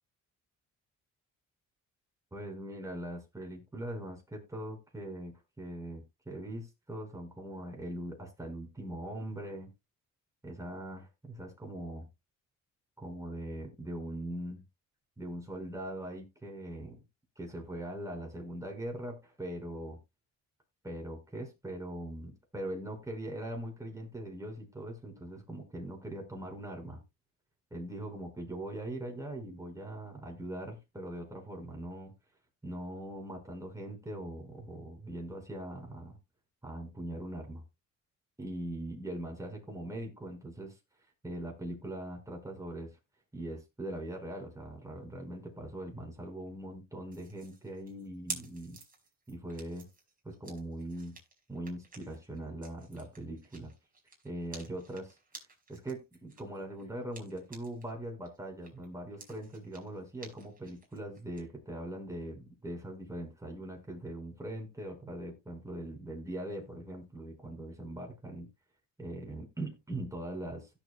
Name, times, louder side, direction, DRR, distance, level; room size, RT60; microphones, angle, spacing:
voice 1, 2.3-9.7 10.4-12.1 13.0-14.6 15.2-17.0 17.4-20.0 20.8-27.0 27.7-32.1 32.6-36.2 36.6-37.6 38.4-40.8 41.2-43.0 43.3-48.8 49.3-49.9 50.2-51.2 51.5-53.7 54.2-55.2 55.7-68.5 69.0-70.7, right 1 dB, 10° right, 5.3 m, -41 dB
sound 1, 47.1-57.9 58.2-61.4, right 3 dB, 30° right, 5.0 m, -50 dB
16.5 x 7.3 x 2.3 m
cardioid pair, 90°, 30 cm